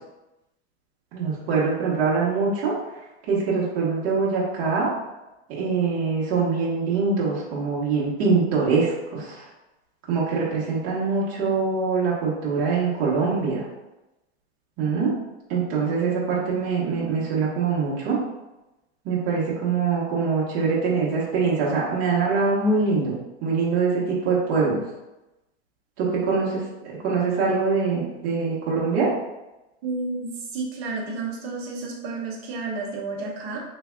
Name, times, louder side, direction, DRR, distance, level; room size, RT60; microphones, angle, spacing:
voice 1, 1.1-2.7 3.3-4.9 5.5-9.4 10.1-13.6 14.8-15.1 15.5-18.2 19.0-23.1 23.4-24.8 26.0-26.6 27.0-29.1, right 4 dB, 45° right, -7 dB, 1.2 m, -23 dB
voice 2, 29.8-33.6, right 3 dB, 65° right, 0 dB, 0.9 m, -31 dB
3.4 x 3.3 x 2.2 m, 0.99 s
hypercardioid pair, 115°, 34 cm